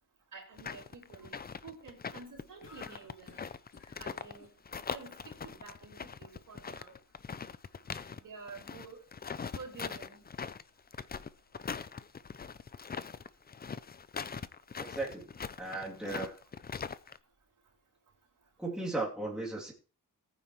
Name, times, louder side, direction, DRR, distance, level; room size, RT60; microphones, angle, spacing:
voice 1, 0.3-1.4 1.6-3.5 4.0-4.5 4.9-7.0 8.2-9.0 9.5-10.2, right 4 dB, 70° right, 1 dB, 4.7 m, -49 dB
sound 1, 0.6-4.4 4.7-8.2 8.5-17.2, left 6 dB, 30° left, 0.5 m, -41 dB
sound 2, 2.6-5.6, left 4 dB, 50° left, 3.7 m, -57 dB
voice 2, 14.9-15.3 15.6-16.4 18.6-19.7, right 2 dB, ahead, -4 dB, 2.8 m, -36 dB
19.0 x 9.1 x 3.1 m, 0.35 s
wide cardioid pair, 165°, 34 cm